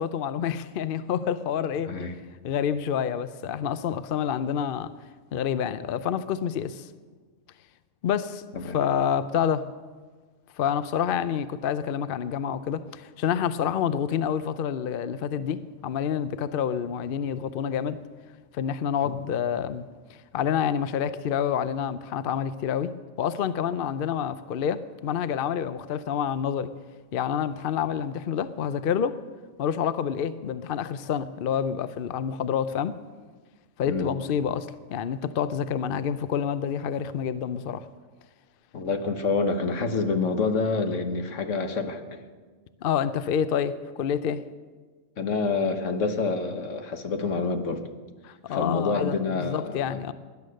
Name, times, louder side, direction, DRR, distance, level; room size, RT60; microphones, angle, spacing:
voice 1, 0.0-2.1 2.4-4.9 5.3-6.9 8.0-8.4 8.7-9.7 10.6-18.0 18.5-19.9 20.3-26.7 27.1-29.2 29.6-32.9 33.8-37.9 42.8-44.4 48.2-50.1, left 8 dB, 55° left, 13 dB, 0.7 m, -28 dB
voice 2, 33.9-34.3 38.7-42.2 45.2-47.9 48.5-50.0, left 4 dB, 80° left, 7 dB, 1.6 m, -27 dB
19.5 x 10.5 x 6.5 m, 1.4 s
omnidirectional pair, 1.3 m